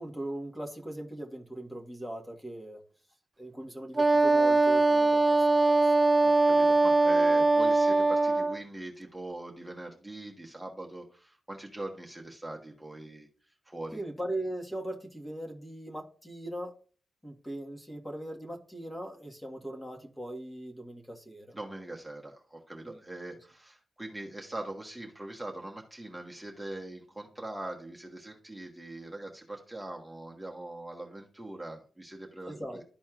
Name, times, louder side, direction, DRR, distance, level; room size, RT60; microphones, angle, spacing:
voice 1, 0.0-2.8 3.4-5.9 13.9-16.8 17.2-21.5 22.8-23.0 32.5-32.8, right 1 dB, 10° left, 1.6 m, -39 dB
Wind instrument woodwind instrument, 4.0-8.6, right 2 dB, 30° right, 0.3 m, -22 dB
voice 2, 6.2-13.3 13.6-14.0 21.5-32.8, right 2 dB, 10° right, 1.5 m, -42 dB
12.5 x 4.2 x 2.5 m
cardioid pair, 60°, 0 cm